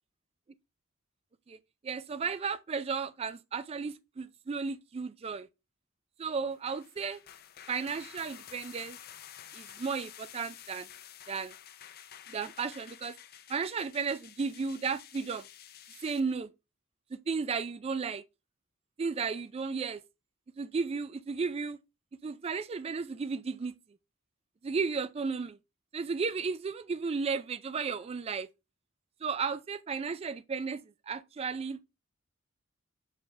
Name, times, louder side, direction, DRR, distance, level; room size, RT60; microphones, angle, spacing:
voice 1, 1.8-5.5 6.2-7.2 7.7-9.0 9.5-10.9 11.3-11.5 12.3-13.2 13.5-15.4 16.0-16.5 17.1-18.2 19.0-20.0 20.6-21.8 22.2-23.7 24.6-25.6 25.9-28.5 29.2-31.8, right 5 dB, 30° right, 0.3 m, -34 dB
sound 1, 6.5-16.2, left 10 dB, 50° left, 0.6 m, -51 dB
6.7 x 4.9 x 3.3 m
head